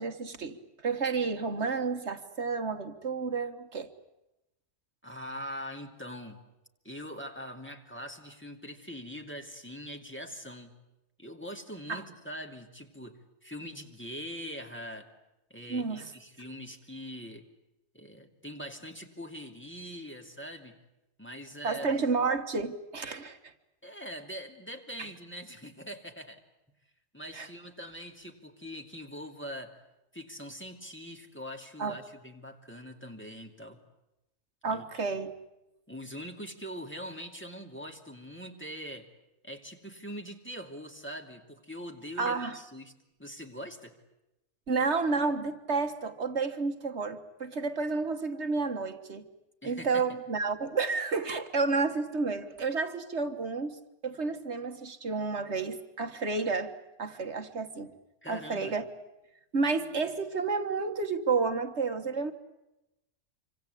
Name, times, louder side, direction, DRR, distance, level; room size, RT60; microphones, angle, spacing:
voice 1, 0.0-3.9 11.9-12.0 15.7-16.1 21.6-23.5 25.0-25.1 27.3-27.5 31.8-32.0 34.6-35.3 42.2-42.6 44.7-49.2 49.6-53.8 54.0-57.9 58.3-58.8 59.5-62.3, right 4 dB, 70° right, 7 dB, 1.8 m, -31 dB
voice 2, 5.0-6.4 6.8-10.7 11.2-15.1 15.5-17.4 17.9-20.7 21.2-21.9 23.8-26.4 27.1-29.8 30.1-33.8 34.7-34.8 35.9-39.1 39.4-42.9 43.2-43.9 49.6-50.1 58.2-58.7, equal, 10° left, 2 dB, 2.7 m, -43 dB
26.5 x 25.5 x 8.4 m, 0.93 s
omnidirectional pair, 1.2 m